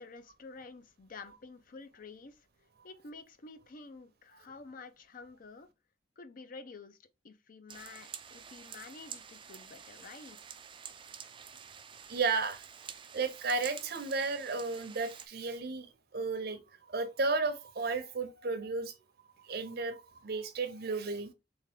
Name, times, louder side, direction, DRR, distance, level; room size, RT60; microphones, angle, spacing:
voice 1, 0.0-2.5 2.8-5.7 6.2-7.0 7.2-10.4, left 4 dB, 50° left, 0.5 m, -50 dB
sound 1, 7.7-15.3, right 7 dB, 25° right, 0.4 m, -49 dB
voice 2, 12.1-12.6 13.1-15.9 16.1-16.6 16.9-18.9 19.5-21.3, right 4 dB, 55° right, 0.7 m, -33 dB
3.6 x 3.2 x 3.5 m
head